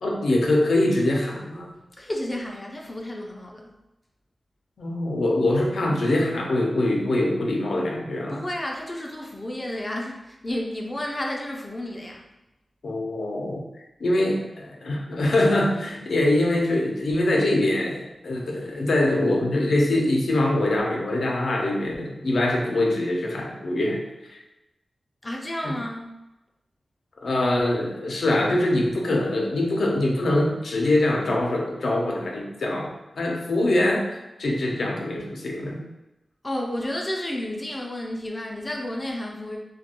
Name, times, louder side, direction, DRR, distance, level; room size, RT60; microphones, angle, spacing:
voice 1, 0.0-1.7 4.8-8.4 12.8-13.6 14.0-24.0 24.3-24.4 25.6-25.7 27.2-34.1 34.4-35.9, left 1 dB, 85° left, -1 dB, 0.5 m, -23 dB
voice 2, 2.0-3.8 8.3-12.2 25.2-26.1 36.4-39.6, left 1 dB, 25° left, 0 dB, 0.4 m, -31 dB
2.2 x 2.2 x 2.8 m, 0.97 s
wide cardioid pair, 85°, 0 cm